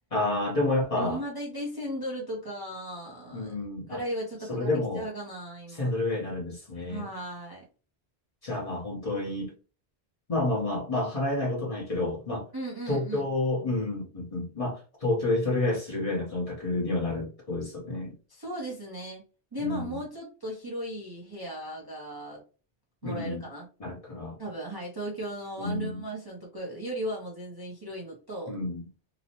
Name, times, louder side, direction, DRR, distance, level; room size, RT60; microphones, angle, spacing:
voice 1, 0.1-1.2 3.3-4.0 4.5-5.1 5.7-7.1 8.4-9.5 10.3-12.5 12.9-18.1 19.6-20.0 23.0-23.5 23.8-24.4 25.6-26.0 28.5-28.9, left 2 dB, 35° left, 0.8 m, -29 dB
voice 2, 1.0-3.6 3.9-4.7 5.0-5.9 6.9-7.6 12.5-13.3 18.3-19.2 19.5-22.4 23.0-23.7 24.4-28.6, equal, 30° right, 0.5 m, -36 dB
2.9 x 2.0 x 2.8 m
omnidirectional pair, 1.1 m